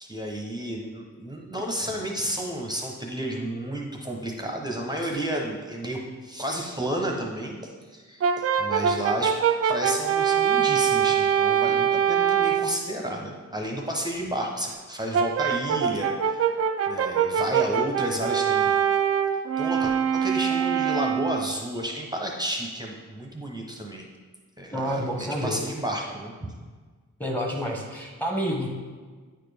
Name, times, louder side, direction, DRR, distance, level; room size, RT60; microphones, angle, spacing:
voice 1, 0.0-16.5 16.9-18.8 19.6-24.1 24.6-26.5, right 1 dB, 15° right, 0 dB, 0.8 m, -32 dB
Brass instrument, 8.2-12.8 15.1-21.5, right 8 dB, 50° right, 0.4 m, -23 dB
voice 2, 24.7-25.6 27.2-28.7, equal, 5° left, 0 dB, 1.2 m, -28 dB
8.9 x 4.2 x 3.4 m, 1.5 s
cardioid pair, 85°, 31 cm